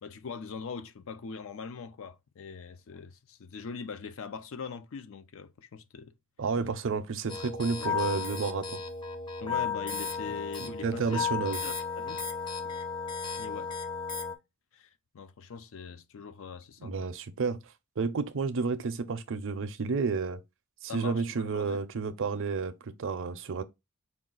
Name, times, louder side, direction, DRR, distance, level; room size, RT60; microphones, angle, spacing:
voice 1, 0.0-6.1 7.8-8.1 9.4-11.2 11.6-12.2 12.6-12.8 13.4-13.7 14.7-14.9 15.1-17.1 20.9-21.8, left 5 dB, 60° left, 0.4 m, -42 dB
voice 2, 6.4-8.8 10.8-11.6 16.8-17.6 18.0-20.4 20.8-23.6, right 4 dB, 60° right, 0.5 m, -31 dB
sound 1, 7.3-14.3, left 5 dB, 20° left, 0.6 m, -34 dB
4.8 x 2.4 x 3.7 m
head